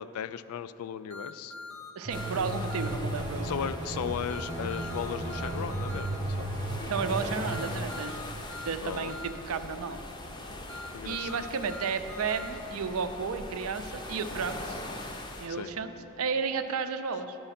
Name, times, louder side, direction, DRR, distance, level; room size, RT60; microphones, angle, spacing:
voice 1, 0.0-1.5 3.4-6.5 8.8-9.3 10.9-11.4 15.5-15.7, left 8 dB, 85° left, 14 dB, 0.3 m, -36 dB
sound 1, 1.1-2.9 4.3-6.1 7.5-9.3 10.7-12.5, left 3 dB, 65° left, 1.1 m, -43 dB
sound 2, 2.0-7.7, right 1 dB, 30° right, 0.9 m, -34 dB
voice 2, 2.0-3.5 6.9-8.4 8.6-10.0 11.0-14.8 15.4-17.4, right 5 dB, 75° right, 9 dB, 0.5 m, -33 dB
sound 3, 2.1-15.5, left 1 dB, 20° left, 0.6 m, -42 dB
9.9 x 5.4 x 5.8 m, 3.0 s
head